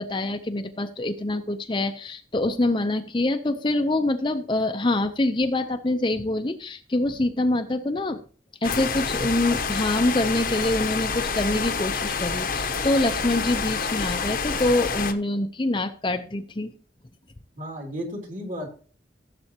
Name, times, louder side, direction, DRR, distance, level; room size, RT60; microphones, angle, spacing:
voice 1, 0.0-8.2 8.6-16.7, left 2 dB, 25° left, 7 dB, 0.6 m, -25 dB
sound 1, 8.6-15.1, left 5 dB, 50° left, 0.9 m, -28 dB
voice 2, 17.6-18.7, equal, 45° right, 2 dB, 2.9 m, -33 dB
16.0 x 7.7 x 2.9 m, 0.40 s
head